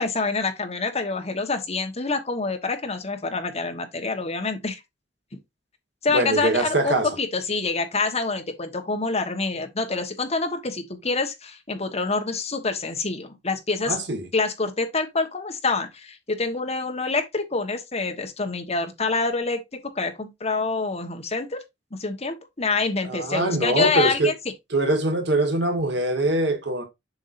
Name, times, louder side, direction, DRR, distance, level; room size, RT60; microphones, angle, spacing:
voice 1, 0.0-4.8 6.0-14.0 14.3-21.6 21.9-24.3, left 3 dB, 35° left, 1.3 m, -26 dB
voice 2, 6.1-7.1 13.9-14.3 23.0-24.3 24.7-26.8, right 2 dB, 70° right, 1.7 m, -23 dB
7.2 x 5.5 x 2.6 m
head